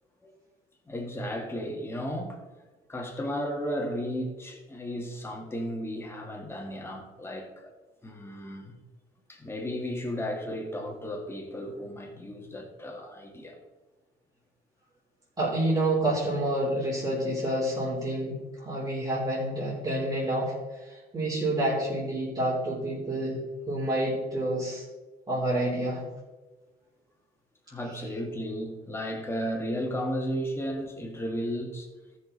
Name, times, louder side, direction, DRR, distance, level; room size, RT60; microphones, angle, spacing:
voice 1, 0.9-2.4 2.9-7.7 8.0-8.7 9.3-13.6 27.7-31.9, equal, 15° left, 1 dB, 2.0 m, -34 dB
voice 2, 15.4-24.9 25.3-26.0, right 1 dB, 25° right, -8 dB, 3.6 m, -28 dB
14.5 x 6.4 x 4.1 m, 1.2 s
cardioid pair, 110°, 17 cm